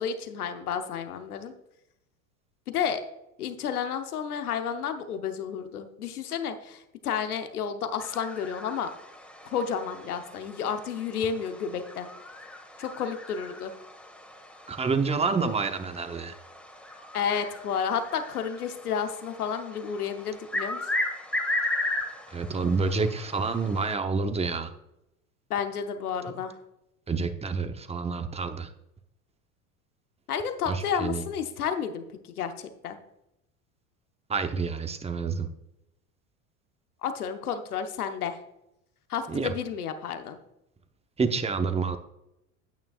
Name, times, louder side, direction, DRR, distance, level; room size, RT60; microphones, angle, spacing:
voice 1, 0.0-1.5 2.7-3.0 3.4-8.9 9.4-12.1 12.8-13.7 17.1-20.8 25.5-26.5 30.3-33.0 37.0-38.4 39.1-40.4, left 7 dB, 90° left, 8 dB, 0.9 m, -31 dB
sound 1, 8.0-24.0, left 1 dB, 5° left, 1.7 m, -37 dB
voice 2, 14.7-16.3 22.3-24.7 27.1-28.7 30.7-31.2 34.3-35.5 39.3-39.5 41.2-42.0, right 4 dB, 15° right, 8 dB, 0.8 m, -28 dB
9.1 x 8.8 x 2.4 m, 0.84 s
hypercardioid pair, 80°, 44 cm